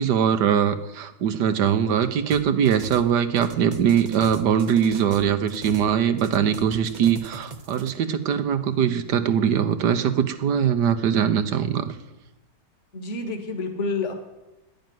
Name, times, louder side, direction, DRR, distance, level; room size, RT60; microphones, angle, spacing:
voice 1, 0.0-12.0, right 8 dB, 90° right, 10 dB, 1.6 m, -22 dB
sound 1, 2.3-3.1 3.4-5.9 6.2-7.9, right 6 dB, 40° right, 0.7 m, -38 dB
voice 2, 12.9-14.1, left 3 dB, 45° left, 5 dB, 2.0 m, -28 dB
11.0 x 10.5 x 9.4 m, 0.97 s
omnidirectional pair, 1.8 m